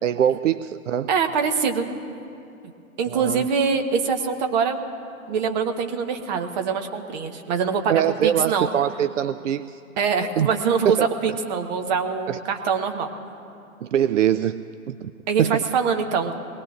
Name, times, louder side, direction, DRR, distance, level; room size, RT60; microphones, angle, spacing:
voice 1, 0.0-1.1 3.1-3.5 7.9-9.8 10.4-10.5 10.8-11.1 12.3-12.4 13.8-15.1 15.4-15.6, right 10 dB, 60° right, 13 dB, 0.5 m, -23 dB
voice 2, 1.1-1.9 3.0-4.8 5.3-7.9 8.2-8.7 10.0-13.1 15.3-16.3, right 6 dB, 30° right, 5 dB, 1.2 m, -24 dB
23.0 x 19.5 x 2.5 m, 2.6 s
figure-of-eight pair, 125°, 42 cm